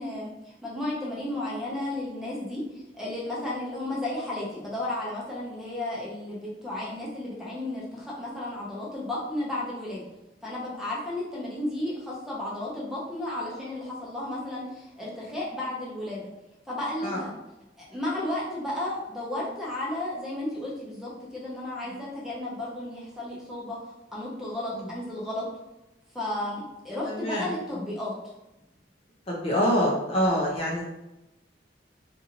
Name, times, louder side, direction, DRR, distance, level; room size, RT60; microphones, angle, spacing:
voice 1, 0.0-2.6 2.9-10.0 10.4-16.2 16.7-17.3 17.8-23.8 24.1-25.4 26.1-28.1, left 1 dB, ahead, -6 dB, 0.7 m, -33 dB
voice 2, 27.1-27.4 29.3-30.9, equal, 35° left, -3 dB, 0.6 m, -25 dB
2.7 x 2.5 x 2.8 m, 0.95 s
head